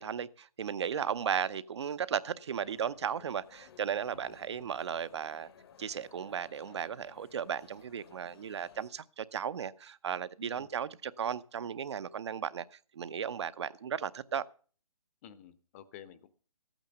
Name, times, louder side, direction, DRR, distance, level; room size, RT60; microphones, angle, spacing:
voice 1, 0.0-5.5 5.8-12.7 12.9-14.5, right 8 dB, 50° right, 17 dB, 0.8 m, -35 dB
sound 1, 2.5-8.9, left 7 dB, 45° left, 1.2 m, -59 dB
voice 2, 4.1-4.7 10.4-10.7 15.2-16.3, left 10 dB, 25° left, 13 dB, 0.9 m, -52 dB
13.5 x 9.0 x 6.8 m, 0.42 s
figure-of-eight pair, 150°, 18 cm